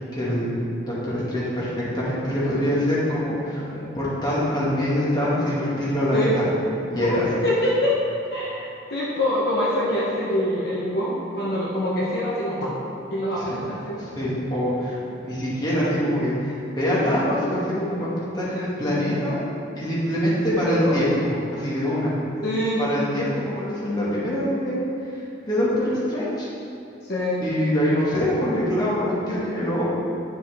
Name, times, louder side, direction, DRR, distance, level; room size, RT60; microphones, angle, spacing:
voice 1, 0.1-0.6 0.8-6.4 6.9-7.3 13.3-13.6 14.0-19.4 19.7-22.1 22.8-26.5 27.4-29.8, equal, 20° left, -8 dB, 1.9 m, -24 dB
voice 2, 7.4-7.9 8.3-12.7 13.1-14.2 20.6-21.0 22.4-22.8 27.1-27.4, left 1 dB, 55° left, -6 dB, 1.2 m, -25 dB
9.9 x 6.1 x 3.6 m, 2.6 s
head